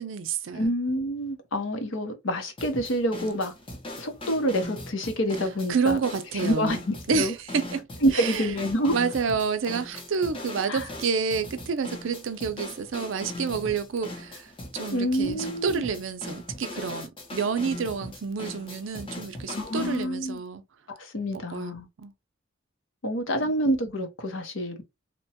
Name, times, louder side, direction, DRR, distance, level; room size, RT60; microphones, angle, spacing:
voice 1, 0.0-0.7 5.7-6.8 7.1-7.9 8.1-8.5 8.9-20.6 21.5-21.7 22.0-22.1 23.4-23.5, right 5 dB, 65° right, 0.5 m, -29 dB
voice 2, 0.5-3.5 4.0-6.0 6.3-7.3 8.0-9.0 10.7-10.8 14.9-15.8 19.5-20.4 21.0-21.9 23.0-24.8, equal, 70° left, 0.8 m, -27 dB
sound 1, 2.6-20.0, left 1 dB, 25° left, 0.7 m, -40 dB
2.9 x 2.2 x 2.8 m
head